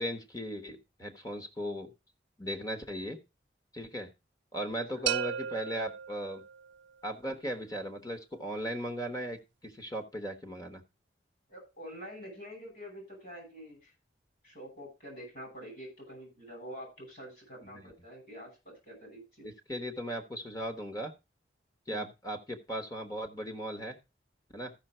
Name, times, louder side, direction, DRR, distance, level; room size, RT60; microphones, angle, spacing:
voice 1, 0.0-1.9 2.4-3.2 3.7-4.1 4.5-6.4 7.0-9.4 9.6-10.8 17.6-17.9 19.4-21.1 21.9-23.9 24.5-24.7, equal, 20° left, 5 dB, 1.2 m, -37 dB
sound 1, 5.1-6.9, right 9 dB, 80° right, 0.4 m, -35 dB
voice 2, 11.5-13.9 14.4-19.5 21.9-22.1, equal, 50° left, 1 dB, 6.2 m, -46 dB
13.5 x 5.9 x 4.4 m, 0.26 s
head